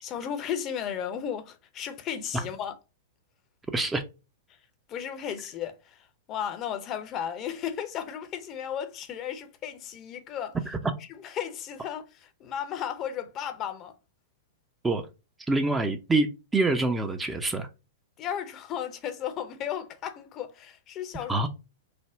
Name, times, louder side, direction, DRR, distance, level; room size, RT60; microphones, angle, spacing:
voice 1, 0.0-2.7 4.9-10.6 11.1-13.9 18.2-21.5, left 9 dB, 35° left, 0.6 m, -35 dB
voice 2, 3.7-4.0 10.7-10.8 14.8-15.0 15.5-17.7 21.3-21.5, right 2 dB, 10° right, 0.4 m, -26 dB
3.3 x 2.1 x 3.6 m
figure-of-eight pair, 105°, 0 cm